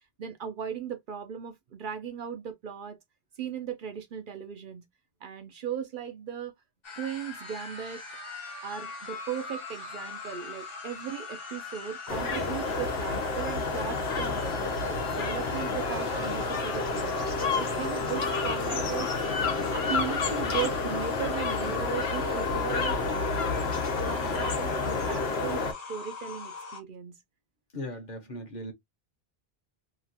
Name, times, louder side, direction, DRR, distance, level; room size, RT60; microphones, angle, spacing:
voice 1, 0.2-3.0 3.4-4.8 5.2-6.5 7.0-8.0 8.6-19.1 19.7-23.0 24.0-27.1, right 8 dB, 60° right, 0.7 m, -37 dB
sound 1, 6.8-26.8, left 4 dB, 65° left, 1.2 m, -41 dB
sound 2, 12.1-25.7, left 3 dB, 85° left, 1.0 m, -29 dB
voice 2, 27.7-28.7, left 1 dB, 50° left, 1.0 m, -38 dB
2.9 x 2.4 x 2.7 m
omnidirectional pair, 1.0 m